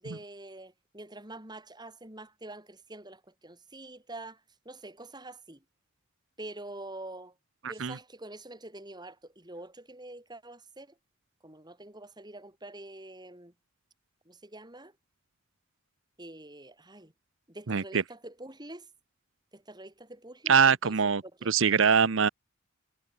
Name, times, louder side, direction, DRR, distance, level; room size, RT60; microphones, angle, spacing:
voice 1, 0.0-5.6 6.4-7.3 7.7-10.9 11.4-13.5 14.3-14.9 16.2-17.1 17.5-18.9 19.5-20.9 21.2-21.5, right 2 dB, 20° right, 8.0 m, -46 dB
voice 2, 7.6-8.0 17.7-18.0 20.5-22.3, right 6 dB, 65° right, 0.8 m, -23 dB
head